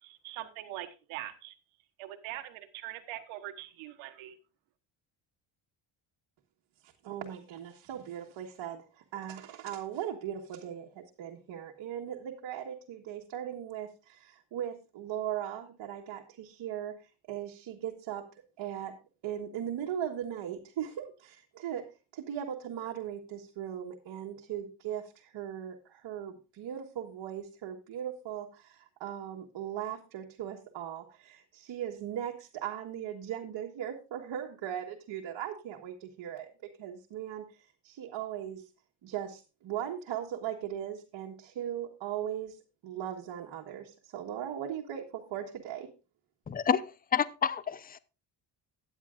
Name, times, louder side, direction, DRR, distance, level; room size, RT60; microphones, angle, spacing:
voice 1, 0.0-1.5 2.0-4.4, right 14 dB, 90° right, 1.2 m, -42 dB
voice 2, 6.8-16.9 17.3-18.2 18.6-18.9 19.2-21.8 22.1-36.5 36.8-38.6 39.0-45.9, right 10 dB, 65° right, 1.5 m, -38 dB
voice 3, 46.5-46.8 47.1-48.0, left 7 dB, 20° left, 0.6 m, -28 dB
13.0 x 9.5 x 2.5 m
supercardioid pair, 85°, 47 cm